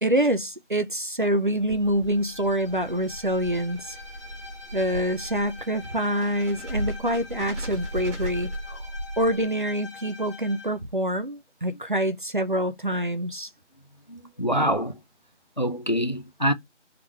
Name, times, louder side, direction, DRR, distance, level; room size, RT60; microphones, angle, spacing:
voice 1, 0.0-4.0 4.7-8.8 9.2-13.5, right 1 dB, 45° right, 0.4 m, -26 dB
sound 1, 1.4-9.7, right 1 dB, 70° right, 1.4 m, -36 dB
Bowed string instrument, 2.1-10.8, left 3 dB, 25° left, 1.2 m, -45 dB
voice 2, 14.1-15.0 15.6-16.5, equal, 40° left, 0.4 m, -25 dB
3.6 x 3.0 x 3.3 m
figure-of-eight pair, 170°, 36 cm